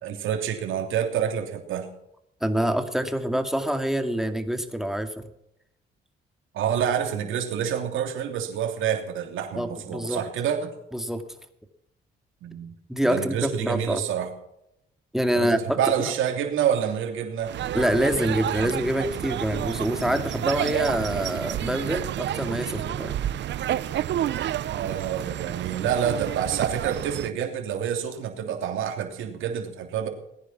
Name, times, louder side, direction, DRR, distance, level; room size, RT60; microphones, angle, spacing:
voice 1, 0.0-1.9 6.5-10.7 12.4-12.7 13.0-14.3 15.3-17.6 24.7-30.1, right 8 dB, 85° right, 3 dB, 3.0 m, -27 dB
voice 2, 2.4-5.3 9.6-10.2 10.9-11.2 12.9-14.0 15.1-16.1 17.7-23.2, equal, ahead, 7 dB, 2.2 m, -26 dB
sound 1, 17.5-27.3, right 11 dB, 65° right, 0.7 m, -30 dB
19.5 x 10.0 x 6.0 m, 0.80 s
cardioid pair, 90°, 20 cm